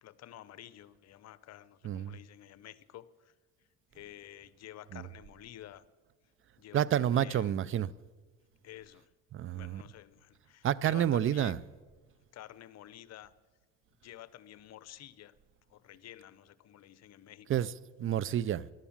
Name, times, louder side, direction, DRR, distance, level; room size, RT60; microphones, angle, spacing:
voice 1, 0.0-3.3 3.9-5.9 6.6-7.6 8.6-9.1 9.5-11.6 12.3-13.3 14.0-15.4 15.7-17.7, left 12 dB, 55° left, 0.7 m, -51 dB
voice 2, 1.8-2.2 4.9-5.0 6.7-7.9 9.3-9.8 10.6-11.6 17.5-17.7 18.0-18.7, right 10 dB, 40° right, 0.5 m, -29 dB
14.0 x 11.0 x 7.3 m
supercardioid pair, 85°, 32 cm